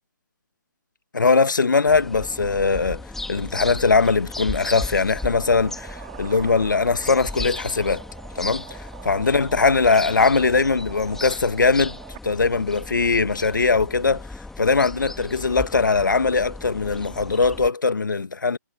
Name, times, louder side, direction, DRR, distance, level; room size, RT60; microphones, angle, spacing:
voice 1, 1.1-3.0 3.3-8.0 8.3-8.8 9.0-12.0 12.2-14.3 14.6-18.6, left 4 dB, 80° left, 1.5 m, -20 dB
sound 1, 1.9-17.7, left 2 dB, 5° left, 2.0 m, -36 dB
sound 2, 5.2-12.2, right 20 dB, 30° right, 4.6 m, -44 dB
figure-of-eight pair, 140°, 10 cm